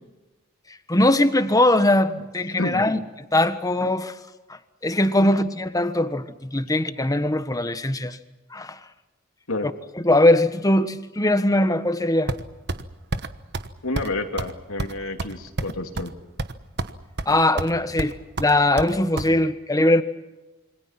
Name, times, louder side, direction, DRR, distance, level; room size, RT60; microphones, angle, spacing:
voice 1, 0.9-3.0 3.3-4.1 4.8-8.2 8.5-8.8 10.0-12.3 17.3-18.1 18.4-20.0, left 1 dB, 15° left, 10 dB, 1.4 m, -20 dB
sound 1, 12.3-12.8 13.1-13.3 13.5-13.7 14.0-14.1 14.4-14.5 14.8-16.1 16.4-16.9 17.2-17.7 18.0-19.3, right 2 dB, 50° right, 1.2 m, -29 dB
voice 2, 13.8-16.1, left 2 dB, 80° left, 5 dB, 3.0 m, -29 dB
27.5 x 25.0 x 6.0 m, 1.1 s
head